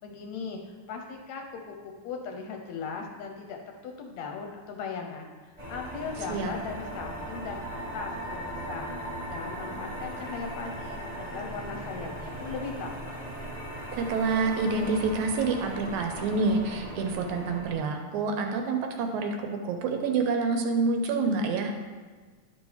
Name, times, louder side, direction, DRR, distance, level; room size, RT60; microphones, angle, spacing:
voice 1, 0.0-8.9 9.3-13.1, left 5 dB, 75° left, 2 dB, 1.8 m, -38 dB
sound 1, 5.6-17.7, right 1 dB, 15° right, 1.3 m, -38 dB
voice 2, 14.0-19.4 19.6-21.7, right 4 dB, 80° right, 4 dB, 2.0 m, -27 dB
11.0 x 5.3 x 3.2 m, 1.4 s
omnidirectional pair, 3.6 m